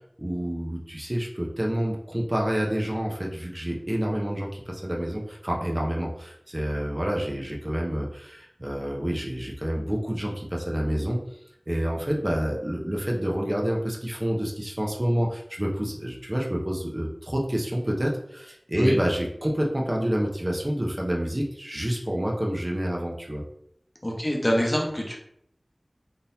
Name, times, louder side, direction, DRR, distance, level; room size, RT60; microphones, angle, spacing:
voice 1, 0.2-11.2 11.7-23.5, equal, 30° right, -1 dB, 0.6 m, -28 dB
voice 2, 24.0-25.2, equal, 30° left, -1 dB, 0.8 m, -25 dB
3.7 x 2.7 x 2.6 m, 0.72 s
wide cardioid pair, 45°, 0 cm